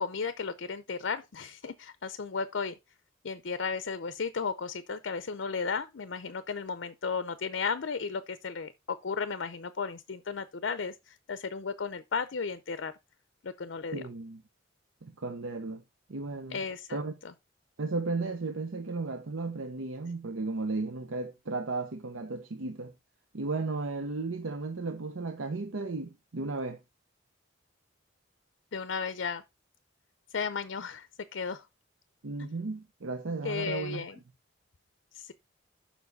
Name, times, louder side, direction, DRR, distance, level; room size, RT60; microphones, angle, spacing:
voice 1, 0.0-2.8 3.2-12.9 13.4-14.0 16.5-17.3 28.7-29.4 30.3-31.1 31.3-31.6 32.4-32.5 33.4-34.2 35.1-35.3, left 5 dB, 65° left, 0.6 m, -34 dB
voice 2, 13.9-14.4 15.0-15.8 16.1-16.6 16.9-17.1 17.8-22.9 23.3-26.8 32.2-34.0, right 3 dB, 85° right, 0.8 m, -34 dB
7.1 x 5.8 x 4.0 m
head